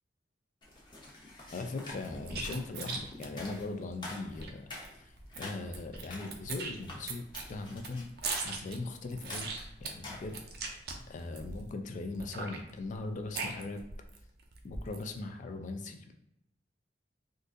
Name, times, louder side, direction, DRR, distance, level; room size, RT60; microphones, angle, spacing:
sound 1, 0.6-10.8, left 2 dB, 25° left, 0.9 m, -48 dB
voice 1, 1.5-8.1 8.4-9.5 9.8-10.4 11.1-13.8 14.6-16.1, left 3 dB, 45° left, 6 dB, 0.3 m, -39 dB
sound 2, 2.0-4.5 4.8-4.9 5.2-6.0 6.3-11.7 12.1-14.2 14.5-15.1, right 4 dB, 60° right, 0.5 m, -40 dB
3.8 x 2.6 x 2.5 m, 0.84 s
head